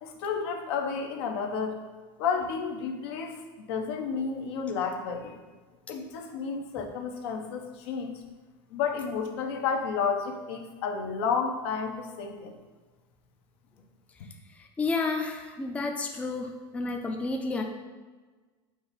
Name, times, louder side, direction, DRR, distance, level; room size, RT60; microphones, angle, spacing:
voice 1, 0.0-1.8 2.2-3.4 3.7-5.4 5.9-8.2 8.7-12.6, left 5 dB, 80° left, 3 dB, 0.7 m, -31 dB
voice 2, 14.5-17.6, left 3 dB, 10° left, 3 dB, 0.3 m, -31 dB
4.7 x 2.6 x 4.0 m, 1.3 s
supercardioid pair, 135°, 13 cm